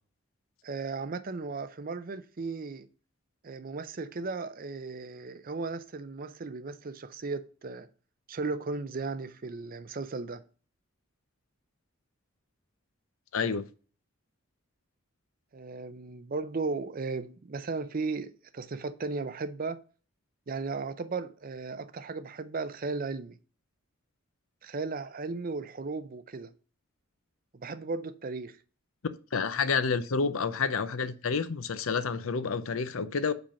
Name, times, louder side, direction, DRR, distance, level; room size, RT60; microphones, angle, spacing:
voice 1, 0.6-2.9 3.4-7.9 8.3-10.4 15.5-19.8 20.5-23.4 24.6-26.5 27.5-28.6, right 4 dB, 40° right, 0.5 m, -36 dB
voice 2, 13.3-13.6 29.3-33.3, left 5 dB, 75° left, 0.6 m, -29 dB
5.1 x 4.4 x 5.6 m
head